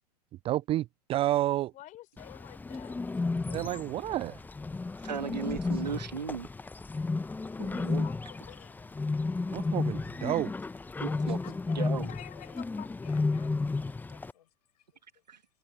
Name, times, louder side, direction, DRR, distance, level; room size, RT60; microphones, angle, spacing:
voice 1, 0.4-1.7 3.5-4.4 9.5-10.5, right 14 dB, 25° right, 0.4 m, -30 dB
voice 2, 1.7-3.0 3.4-3.8 7.7-9.0 12.1-12.9, left 14 dB, 40° left, 3.9 m, -50 dB
Bird, 2.2-14.3, left 3 dB, 10° left, 0.8 m, -33 dB
voice 3, 5.0-6.5 7.6-8.1 11.0-11.4 11.8-12.1 15.3-15.4, right 7 dB, 85° right, 1.8 m, -36 dB
voice 4, 11.1-11.9 12.3-12.6 13.0-14.5 14.7-14.9 15.1-15.2, left 11 dB, 70° left, 6.7 m, -53 dB
hypercardioid pair, 100°, 21 cm